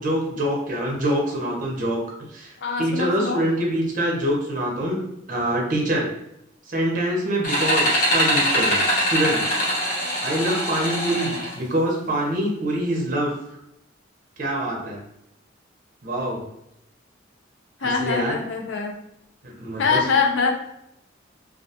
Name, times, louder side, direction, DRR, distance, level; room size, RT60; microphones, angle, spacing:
voice 1, 0.0-2.0 2.3-2.5 2.8-5.0 5.3-6.1 6.7-9.4 10.2-13.3 14.4-15.0 16.0-16.4 17.8-18.4 19.4-20.0, right 1 dB, 45° right, -1 dB, 0.7 m, -25 dB
voice 2, 2.6-3.4 17.8-19.0 19.8-20.6, left 5 dB, 75° left, 3 dB, 0.4 m, -23 dB
sound 1, 7.4-11.5, equal, 40° left, 0.8 m, -23 dB
2.4 x 2.2 x 2.7 m, 0.82 s
head